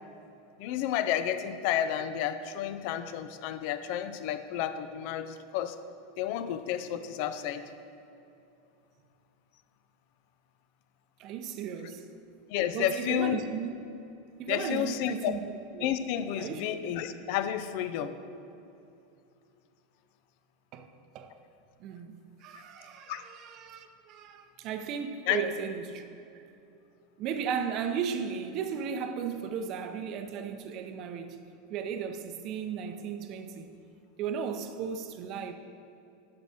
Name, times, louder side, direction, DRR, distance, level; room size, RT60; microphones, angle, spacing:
voice 1, 0.6-5.8 6.2-7.6 12.5-13.4 14.5-15.4 15.8-18.2 22.5-22.6 23.1-23.2 25.3-25.4, left 10 dB, 60° left, 0.5 m, -31 dB
voice 2, 11.2-12.1 12.7-13.7 14.4-15.4 15.7-15.9 16.4-16.9 20.7-21.3 21.8-26.0 26.3-26.4 27.2-31.4 31.7-33.7 34.2-35.5, right 7 dB, 45° right, 0.7 m, -35 dB
10.5 x 6.1 x 4.2 m
supercardioid pair, 130°, 0 cm